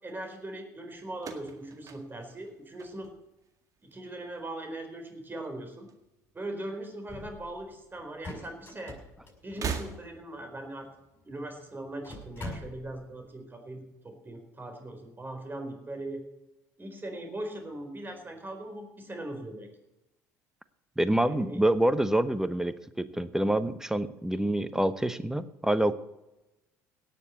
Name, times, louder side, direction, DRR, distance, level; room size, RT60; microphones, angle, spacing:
voice 1, 0.0-3.1 3.9-5.9 6.3-9.0 9.4-10.9 11.2-16.2 16.8-19.7 21.2-21.6, right 1 dB, 25° right, 5 dB, 4.2 m, -40 dB
sound 1, 1.1-3.5 3.8-4.4 5.4-6.5 6.7-6.8 8.0-8.1 9.4-10.5, right 6 dB, 40° right, 1.9 m, -40 dB
sound 2, 7.1-7.7 8.0-10.1 11.0-11.1 11.3-11.4 11.9-13.1, left 1 dB, 25° left, 6.2 m, -43 dB
voice 2, 21.0-25.9, right 1 dB, 5° right, 13 dB, 0.9 m, -27 dB
17.5 x 6.9 x 8.2 m, 0.96 s
hypercardioid pair, 60°, 8 cm